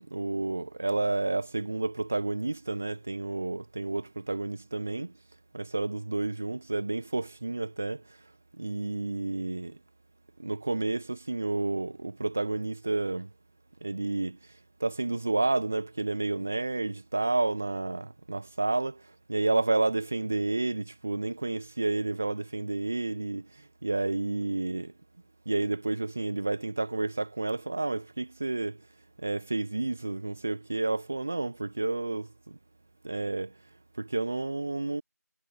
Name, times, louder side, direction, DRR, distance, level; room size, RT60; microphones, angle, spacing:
voice 1, 0.0-5.1 5.5-8.0 8.6-9.8 10.4-13.3 13.8-14.4 14.8-24.9 25.4-28.8 29.2-32.6 33.0-33.5 34.0-35.0, right 2 dB, 5° right, 1.5 m, -30 dB
figure-of-eight pair, 175°, 9 cm